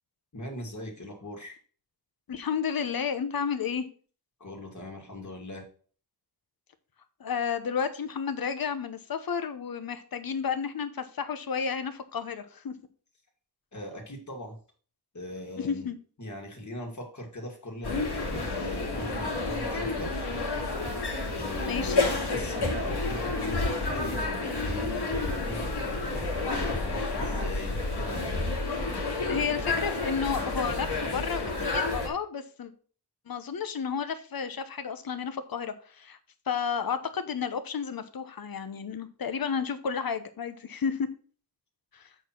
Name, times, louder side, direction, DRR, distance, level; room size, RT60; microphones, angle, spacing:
voice 1, 0.3-1.6 4.4-5.6 13.7-14.6 15.1-15.9 16.2-20.1 21.2-25.6 26.4-28.3, left 1 dB, 45° left, 1 dB, 2.5 m, -40 dB
voice 2, 2.3-3.9 7.2-12.7 15.6-16.0 21.6-22.0 29.3-32.7 33.3-36.2 36.5-41.1 41.9-42.1, left 6 dB, 60° left, 11 dB, 1.0 m, -32 dB
sound 1, 17.8-32.1, left 3 dB, 80° left, 2.7 m, -30 dB
7.9 x 4.6 x 5.9 m, 0.42 s
wide cardioid pair, 115°, 39 cm